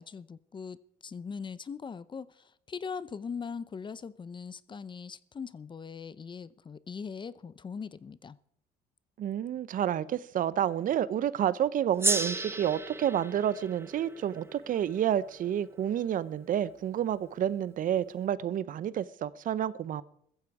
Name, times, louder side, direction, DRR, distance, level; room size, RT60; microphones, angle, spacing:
voice 1, 0.0-8.4, left 6 dB, 30° left, 0.7 m, -41 dB
voice 2, 9.2-20.0, right 10 dB, 55° right, 0.7 m, -29 dB
Gong, 12.0-16.7, right 3 dB, 15° right, 1.1 m, -35 dB
15.0 x 14.5 x 4.8 m
cardioid pair, 110°, 17 cm